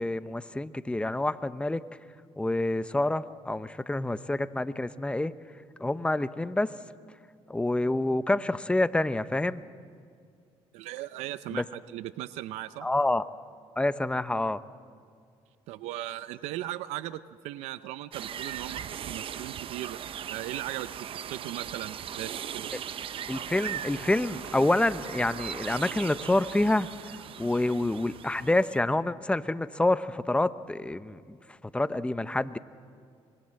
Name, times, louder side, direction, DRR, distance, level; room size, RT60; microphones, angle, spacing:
voice 1, 0.0-1.8 2.4-5.3 5.8-6.7 7.5-9.6 11.5-11.6 12.8-13.2 13.8-14.6 23.3-26.9 27.4-31.4 31.6-32.6, left 2 dB, 10° left, 13 dB, 0.8 m, -27 dB
voice 2, 10.7-12.9 15.7-20.0 20.3-22.7, right 14 dB, 85° right, 14 dB, 0.6 m, -38 dB
sound 1, 18.1-28.8, right 9 dB, 55° right, 0.8 m, -39 dB
sound 2, 23.2-28.6, left 4 dB, 65° left, 3.1 m, -53 dB
26.0 x 21.5 x 7.7 m, 2.3 s
cardioid pair, 85°, 11 cm